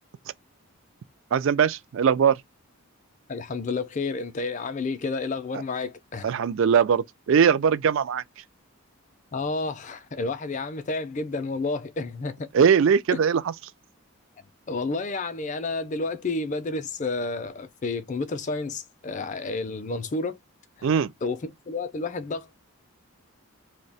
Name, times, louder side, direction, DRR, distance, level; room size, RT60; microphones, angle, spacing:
voice 1, 1.3-2.4 6.2-8.4 12.5-13.5 20.8-21.1, right 7 dB, 60° right, 0.3 m, -21 dB
voice 2, 3.3-6.3 9.3-12.5 14.7-20.4 20.8-20.9 21.2-21.4 21.7-22.6, left 3 dB, 35° left, 0.4 m, -30 dB
2.7 x 2.1 x 3.9 m
head